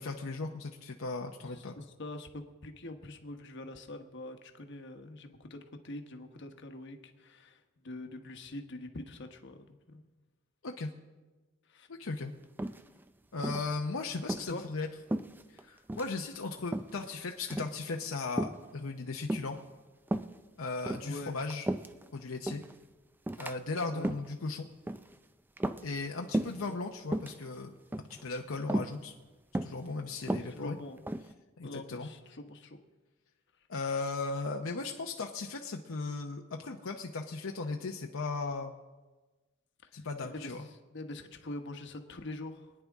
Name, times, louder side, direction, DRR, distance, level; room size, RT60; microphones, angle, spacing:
voice 1, 0.0-1.8 10.6-10.9 11.9-12.3 13.3-14.9 15.6-19.6 20.6-21.7 22.1-22.6 23.4-24.7 25.8-29.1 29.6-30.8 31.6-32.1 33.7-38.8 39.9-40.6, left 3 dB, 80° left, 2 dB, 0.8 m, -37 dB
voice 2, 1.5-10.0 11.7-11.9 14.5-14.6 21.0-21.4 23.9-24.1 26.6-26.8 30.0-30.2 30.5-31.0 31.6-32.8 40.2-40.5 40.9-42.7, left 2 dB, 60° left, 6 dB, 1.2 m, -44 dB
sound 1, 12.6-13.1 13.4-13.7 14.2-14.5 15.1-15.6 15.9-16.1 16.7-17.1 17.4-17.8 18.4-18.7 19.3-19.7 20.1-20.4 20.8-22.1 22.5-22.7 23.3-23.5 23.9-24.3 24.9-25.1 25.6-26.1 26.3-26.7 27.0-27.4 27.9-28.2 28.7-29.0 29.5-29.8 30.2-31.3, right 1 dB, 10° right, 0.4 m, -34 dB
24.5 x 9.7 x 3.6 m, 1.2 s
head